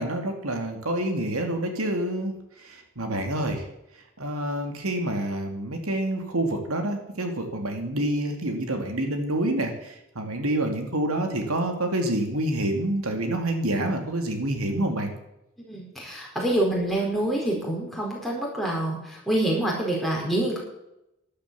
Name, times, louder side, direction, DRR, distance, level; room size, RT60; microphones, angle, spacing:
voice 1, 0.0-3.7 4.2-15.1, right 1 dB, 85° right, 4 dB, 2.7 m, -27 dB
voice 2, 15.7-20.6, right 1 dB, ahead, -3 dB, 4.9 m, -26 dB
12.5 x 12.0 x 7.1 m, 0.87 s
head